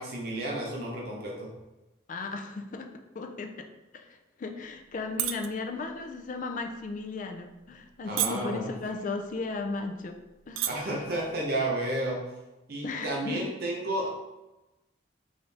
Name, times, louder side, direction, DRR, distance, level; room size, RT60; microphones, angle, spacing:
voice 1, 0.0-1.5 8.1-8.7 10.6-12.2 12.7-14.1, right 1 dB, 55° right, -3 dB, 0.7 m, -31 dB
voice 2, 2.1-3.7 3.9-10.2 10.5-11.0 12.8-13.4, left 3 dB, 45° left, 4 dB, 0.4 m, -36 dB
sound 1, 5.0-5.5 5.8-6.1 6.8-7.0 7.6-7.9 8.2-8.6 9.4-9.5 9.7-9.8 10.4-10.7 11.0-11.3, right 12 dB, 85° right, 0.3 m, -29 dB
3.7 x 2.6 x 3.3 m, 1.0 s
head